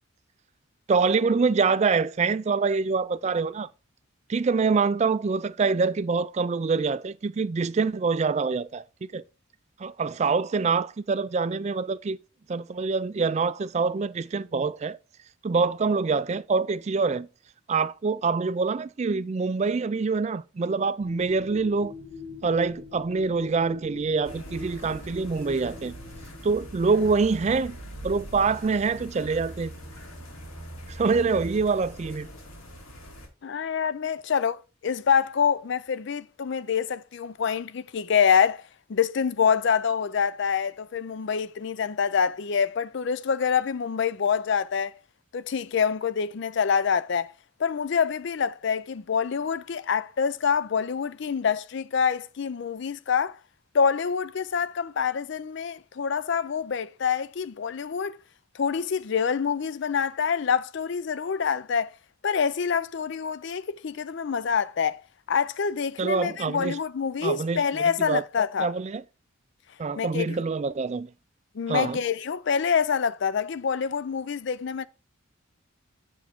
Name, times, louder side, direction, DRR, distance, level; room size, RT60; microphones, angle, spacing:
voice 1, 0.9-3.7 4.3-9.2 9.8-12.2 12.5-15.0 15.4-17.3 17.7-21.9 22.4-25.9 26.4-27.8 28.0-29.7 30.9-32.3 66.0-66.8 67.2-68.2 68.6-69.0 69.8-71.1 71.7-72.0, right 4 dB, 30° right, 0.3 m, -25 dB
sound 1, 21.0-26.9, left 4 dB, 35° left, 2.0 m, -44 dB
sound 2, 24.2-33.3, right 1 dB, 85° left, 2.9 m, -42 dB
voice 2, 33.4-38.6 38.9-44.9 45.3-47.3 47.6-53.4 53.7-58.2 58.5-61.9 62.2-65.0 65.3-68.7 70.0-70.4 71.5-74.8, left 6 dB, 55° left, 0.4 m, -26 dB
7.3 x 7.2 x 3.5 m
head